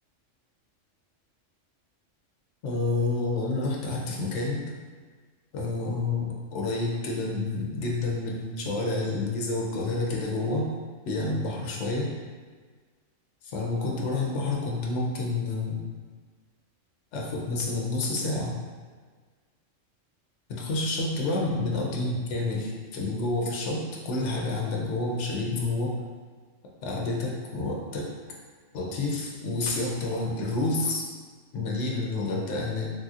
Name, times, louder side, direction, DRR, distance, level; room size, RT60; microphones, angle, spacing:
voice 1, 2.6-4.6 5.5-10.7 11.1-12.1 13.4-15.8 17.1-18.5 20.5-26.0 26.8-28.1 28.7-31.0 31.5-32.9, left 2 dB, 70° left, -2 dB, 0.9 m, -29 dB
3.3 x 2.8 x 2.4 m, 1.5 s
omnidirectional pair, 1.3 m